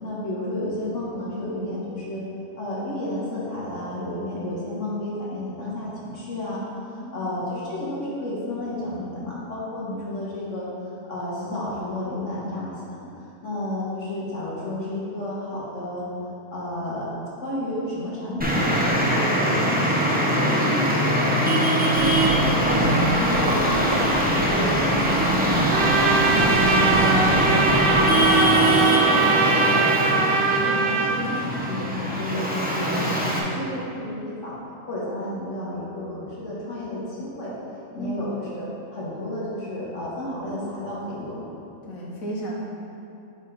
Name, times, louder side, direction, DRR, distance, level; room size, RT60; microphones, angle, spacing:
voice 1, 0.0-2.2 2.6-6.6 7.0-10.7 11.1-12.7 13.4-16.1 16.5-17.1 17.4-20.1 20.3-21.6 22.0-26.1 26.4-27.3 27.7-29.3 29.6-33.0 33.5-34.6 34.9-37.5 37.9-41.4, left 1 dB, 55° left, -7 dB, 1.7 m, -32 dB
voice 2, 6.9-7.3 20.5-20.8 38.0-38.2 41.8-42.5, right 1 dB, 70° left, -4 dB, 1.5 m, -34 dB
Traffic noise roadway noise, 18.4-33.4, right 1 dB, 15° right, 0.3 m, -21 dB
sound 1, 21.9-28.4, right 1 dB, 45° right, 1.2 m, -34 dB
Trumpet, 25.7-31.2, right 4 dB, 75° right, 0.4 m, -22 dB
5.0 x 4.9 x 5.5 m, 2.7 s
omnidirectional pair, 1.5 m